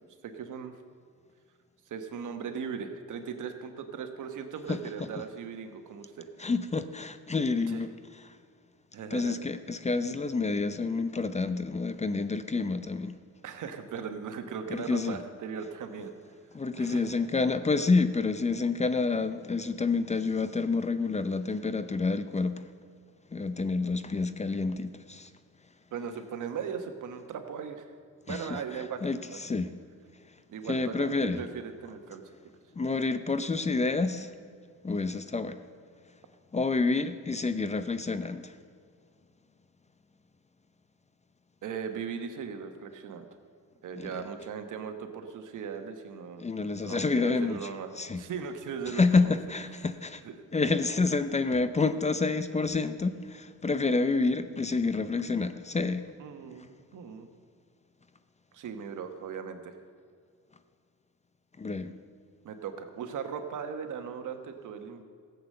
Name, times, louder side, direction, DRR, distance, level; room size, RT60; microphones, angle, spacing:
voice 1, 0.2-0.7 1.9-6.3 7.7-7.8 8.9-9.4 13.4-16.1 16.8-17.0 25.9-27.8 28.3-29.4 30.5-32.2 41.6-43.3 43.8-46.4 46.8-49.4 50.2-50.4 56.2-57.3 58.5-59.8 62.4-65.0, right 6 dB, 70° right, 7 dB, 1.3 m, -38 dB
voice 2, 6.4-8.4 9.1-13.2 14.7-15.2 16.5-22.7 23.3-25.3 28.3-29.7 30.7-31.5 32.7-34.4 34.8-35.6 36.5-38.6 44.0-44.3 46.4-47.6 48.0-48.2 48.9-50.2 50.5-56.1 61.6-61.9, left 3 dB, 20° left, 11 dB, 0.6 m, -28 dB
15.0 x 8.1 x 6.6 m, 2.1 s
cardioid pair, 95°, 32 cm